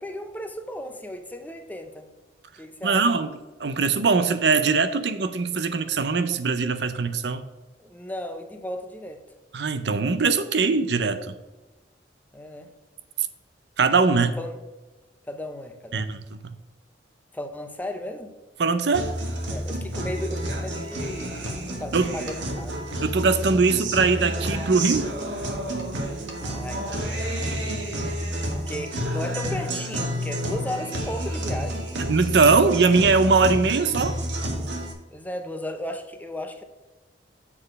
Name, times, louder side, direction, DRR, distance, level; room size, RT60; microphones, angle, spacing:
voice 1, 0.0-2.1 2.6-3.1 7.8-9.2 12.3-12.7 14.4-14.6 15.2-16.1 17.3-18.3 19.5-22.8 26.4-28.2 28.7-31.8 35.1-36.6, left 1 dB, 10° left, 6 dB, 0.7 m, -35 dB
voice 2, 2.8-3.3 3.6-7.4 9.5-11.3 13.8-14.4 15.9-16.6 18.6-19.1 21.9-22.1 23.0-25.1 32.0-34.2, right 4 dB, 65° right, 11 dB, 0.6 m, -21 dB
Guitar, 18.9-34.9, right 1 dB, 85° right, 1.5 m, -30 dB
7.4 x 4.3 x 6.4 m, 1.1 s
head